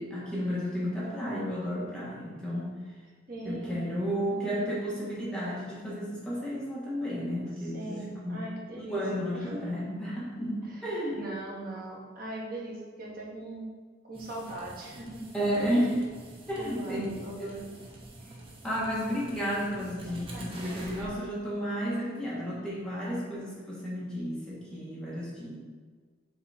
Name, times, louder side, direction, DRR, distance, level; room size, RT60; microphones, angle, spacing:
voice 1, 0.0-2.7 3.4-8.4 8.7-11.2 15.3-16.0 16.5-17.1 17.4-17.6 18.6-25.5, equal, 5° left, -8 dB, 1.7 m, -32 dB
voice 2, 3.3-3.8 4.2-4.9 7.6-9.6 10.6-10.8 11.1-13.7 14.0-15.2 16.6-17.8 19.7-20.5, right 1 dB, 50° right, -4 dB, 1.7 m, -41 dB
sound 1, 14.1-21.1, right 1 dB, 30° right, 1.1 m, -46 dB
7.1 x 4.1 x 4.3 m, 1.5 s
head